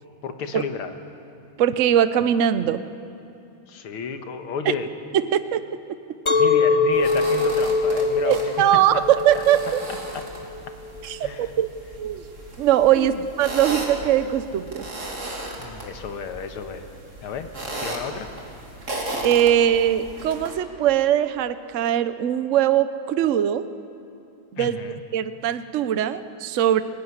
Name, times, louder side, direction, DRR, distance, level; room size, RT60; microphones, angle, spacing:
voice 1, 0.2-0.9 3.7-4.9 6.3-8.4 8.9-9.0 10.1-10.2 11.2-11.5 13.0-13.2 15.6-16.9 17.2-17.5 17.8-18.3 24.6-25.0, left 6 dB, 80° left, 7 dB, 2.2 m, -32 dB
voice 2, 1.6-2.8 5.3-5.6 8.2-9.8 11.0-11.7 12.0-12.2 12.6-14.8 19.2-23.6 24.5-24.8 25.1-26.8, right 10 dB, 75° right, 12 dB, 0.7 m, -21 dB
Chink clink, 6.3-11.4, left 4 dB, 40° left, 0.4 m, -23 dB
sound 1, 6.9-20.6, right 1 dB, 35° right, 3.2 m, -36 dB
25.0 x 16.0 x 9.7 m, 2.6 s
omnidirectional pair, 2.3 m